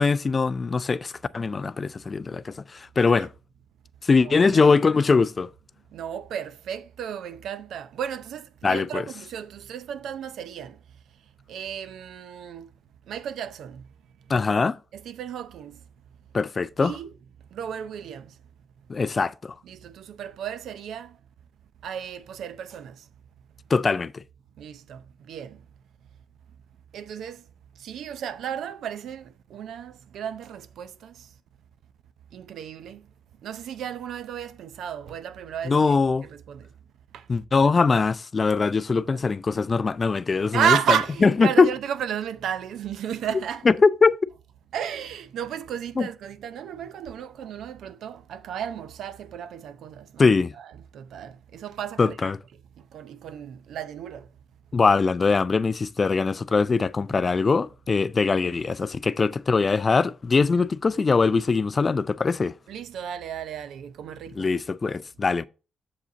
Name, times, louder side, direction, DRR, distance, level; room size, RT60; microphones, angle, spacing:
voice 1, 0.0-3.3 4.0-5.5 8.6-9.1 14.3-14.8 16.3-16.9 18.9-19.5 23.7-24.2 35.7-36.2 37.3-40.8 41.2-41.7 43.7-44.2 46.0-46.1 50.2-50.5 52.0-52.4 54.7-62.5 64.4-65.5, left 4 dB, 35° left, 0.3 m, -22 dB
voice 2, 4.2-4.7 5.9-10.8 11.5-12.7 13.1-13.9 14.9-15.8 16.8-17.1 17.5-18.3 19.6-21.2 21.8-23.1 24.6-25.6 26.9-27.4 27.8-31.3 32.3-33.0 33.4-36.0 36.2-36.7 37.1-37.3 38.9-39.2 40.5-43.7 44.7-50.3 50.5-52.3 52.8-54.3 57.1-57.2 62.7-64.5, right 8 dB, 75° right, 0.6 m, -33 dB
6.8 x 5.0 x 3.9 m
cardioid pair, 90°, 0 cm